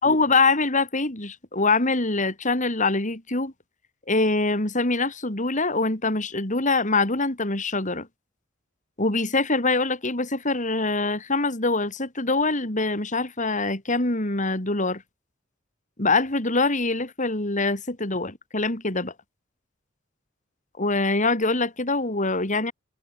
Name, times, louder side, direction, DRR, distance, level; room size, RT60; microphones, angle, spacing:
voice 1, 0.0-3.5 4.1-8.1 9.0-15.0 16.0-19.1 20.8-22.7, left 3 dB, 40° left, 4.2 m, -24 dB
head